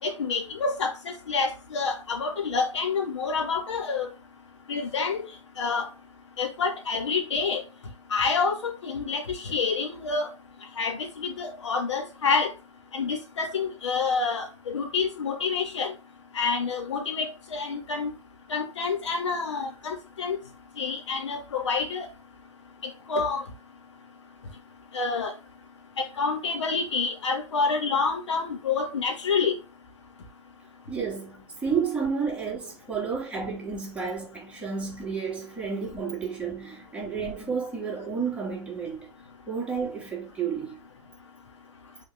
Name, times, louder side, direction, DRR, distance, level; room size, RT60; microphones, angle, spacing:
voice 1, 0.0-4.1 4.7-5.2 5.6-5.9 6.4-7.6 8.1-10.3 10.8-12.5 12.9-15.9 16.3-18.1 18.5-20.4 20.8-22.1 23.1-23.4 24.9-25.3 26.0-29.6, left 4 dB, 65° left, 2.7 m, -28 dB
voice 2, 30.9-39.1 39.5-40.7, right 6 dB, 5° right, 3.4 m, -31 dB
6.2 x 5.2 x 3.6 m
figure-of-eight pair, 110°, 16 cm